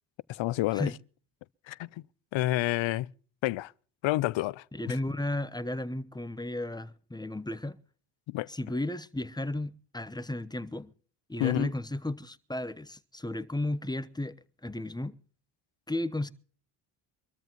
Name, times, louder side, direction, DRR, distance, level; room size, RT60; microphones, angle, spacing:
voice 1, 0.3-0.9 1.7-2.0 2.3-3.1 3.4-3.7 4.0-5.0 8.3-8.5 11.4-11.7, left 17 dB, 65° left, 0.7 m, -29 dB
voice 2, 4.7-7.8 8.5-10.9 11.3-14.4 14.6-15.2 15.9-16.3, left 1 dB, 10° left, 0.9 m, -34 dB
25.0 x 13.5 x 3.0 m
cardioid pair, 80°, 49 cm